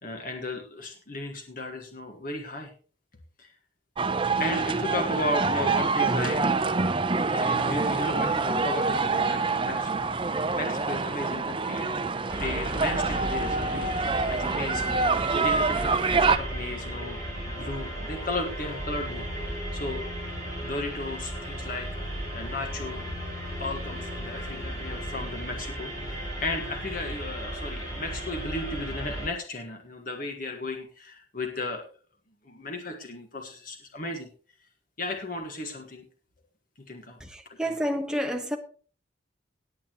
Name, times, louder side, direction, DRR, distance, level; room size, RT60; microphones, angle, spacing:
voice 1, 0.0-2.7 3.4-3.5 4.4-6.4 7.3-9.9 10.5-13.9 14.3-15.0 15.3-20.0 20.4-21.9 22.3-23.1 23.6-31.8 32.4-34.3 35.0-36.0 36.9-37.2, left 2 dB, 45° left, 1.6 m, -35 dB
sound 1, 4.0-16.4, right 4 dB, 25° right, 0.7 m, -26 dB
sound 2, 12.3-29.3, right 1 dB, 20° left, 7.1 m, -35 dB
voice 2, 37.2-38.6, equal, 5° right, 1.1 m, -29 dB
18.0 x 8.7 x 3.0 m
head